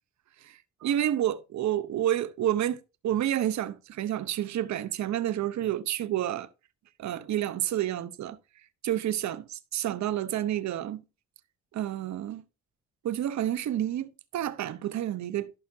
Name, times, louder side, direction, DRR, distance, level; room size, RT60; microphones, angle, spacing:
voice 1, 0.4-6.5 7.0-8.4 8.8-11.0 11.7-12.4 13.0-15.5, right 11 dB, 65° right, 0.9 m, -29 dB
14.0 x 5.7 x 2.8 m
cardioid pair, 90°, 30 cm